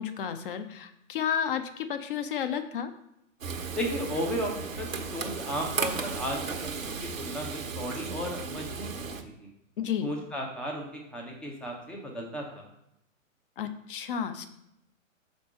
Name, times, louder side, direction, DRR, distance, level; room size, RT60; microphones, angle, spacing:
voice 1, 0.0-2.9 9.8-10.1 13.6-14.5, left 8 dB, 40° left, 9 dB, 0.7 m, -32 dB
Frying (food), 3.4-9.2, right 5 dB, 75° right, 1.0 m, -35 dB
voice 2, 3.7-4.5 4.8-8.9 9.2-9.5 10.0-12.6, equal, ahead, 0 dB, 0.5 m, -35 dB
5.3 x 4.1 x 5.3 m, 0.80 s
figure-of-eight pair, 115°, 40 cm